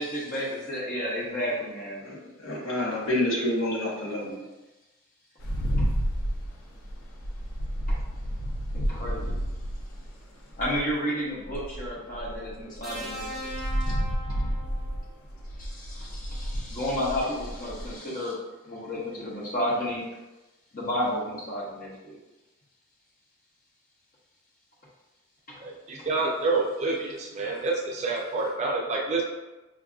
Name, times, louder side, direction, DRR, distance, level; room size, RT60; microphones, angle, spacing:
voice 1, 0.0-2.0 5.8-5.9 7.9-8.0 8.7-9.4 10.6-13.5 13.9-14.0 14.3-14.4 15.6-18.4 18.7-20.0 20.7-22.2 25.5-25.6 26.0-26.1, equal, 40° left, -4 dB, 0.8 m, -32 dB
voice 2, 2.0-4.4, left 1 dB, 70° left, -4 dB, 1.0 m, -28 dB
sound 1, 5.4-10.9 11.4-17.9, equal, 90° left, 0.5 m, -31 dB
sound 2, 12.8-15.1 16.4-16.6, equal, ahead, 0.9 m, -39 dB
voice 3, 25.6-29.2, right 3 dB, 30° right, -1 dB, 0.4 m, -28 dB
4.6 x 2.5 x 2.4 m, 1.1 s
head